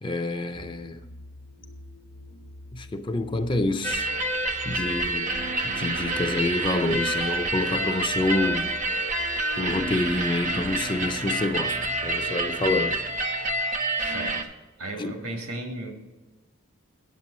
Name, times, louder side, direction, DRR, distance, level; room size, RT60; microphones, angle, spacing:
voice 1, 0.0-1.0 2.7-4.1 4.6-5.3 5.6-9.0 9.6-13.0 15.0-15.2, left 2 dB, 20° left, 0.4 m, -28 dB
sound 1, 0.5-13.2, left 1 dB, 75° left, 1.0 m, -46 dB
sound 2, 3.8-14.4, right 2 dB, 35° right, 0.6 m, -28 dB
voice 2, 13.9-14.5 14.8-15.9, right 2 dB, 75° right, 1.7 m, -35 dB
9.5 x 7.5 x 4.3 m
head